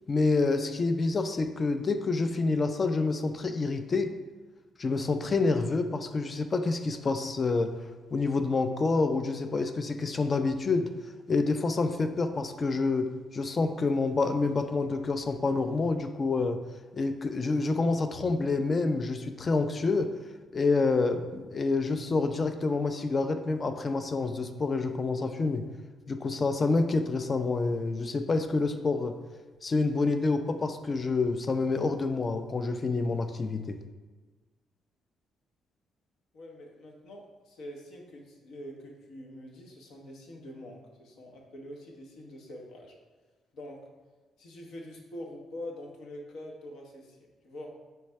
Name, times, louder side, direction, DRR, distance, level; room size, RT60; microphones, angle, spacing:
voice 1, 0.1-4.1 4.8-7.8 8.1-10.9 11.3-16.6 16.9-20.1 20.5-25.7 26.1-29.2 29.6-33.8, left 3 dB, 35° left, 8 dB, 0.3 m, -28 dB
voice 2, 36.3-42.9 43.5-43.8 44.4-47.7, left 1 dB, 75° left, 1 dB, 0.8 m, -45 dB
3.2 x 3.2 x 4.5 m, 1.3 s
cardioid pair, 90°, 0 cm